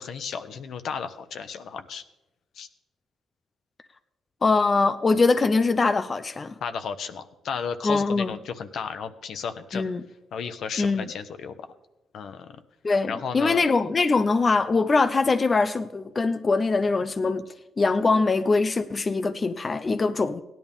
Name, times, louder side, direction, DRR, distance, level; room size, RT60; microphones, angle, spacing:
voice 1, 0.0-2.0 2.6-2.7 6.6-9.8 10.3-11.5 12.1-12.6 13.1-13.6, left 6 dB, 65° left, 9 dB, 1.0 m, -34 dB
voice 2, 4.4-6.5 7.8-8.4 9.7-10.0 10.8-11.1 12.8-17.4 17.8-20.4, left 3 dB, 30° left, 9 dB, 0.6 m, -22 dB
17.0 x 10.5 x 3.6 m, 0.97 s
cardioid pair, 90°, 0 cm